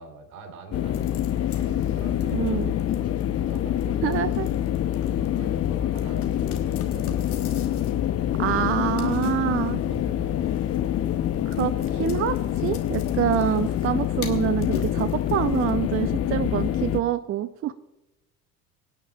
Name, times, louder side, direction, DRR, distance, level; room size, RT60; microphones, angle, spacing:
voice 1, 0.0-4.8 5.1-8.2 9.6-10.5, right 5 dB, 70° right, 4 dB, 2.7 m, -45 dB
sound 1, 0.7-17.0, left 11 dB, 30° left, 0.7 m, -26 dB
sound 2, 0.9-15.7, left 6 dB, 80° left, 1.4 m, -44 dB
voice 2, 2.3-2.7 4.0-4.5 8.4-9.8 11.5-17.7, right 11 dB, 30° right, 13 dB, 0.5 m, -26 dB
24.0 x 9.5 x 2.3 m, 0.96 s
figure-of-eight pair, 65°, 44 cm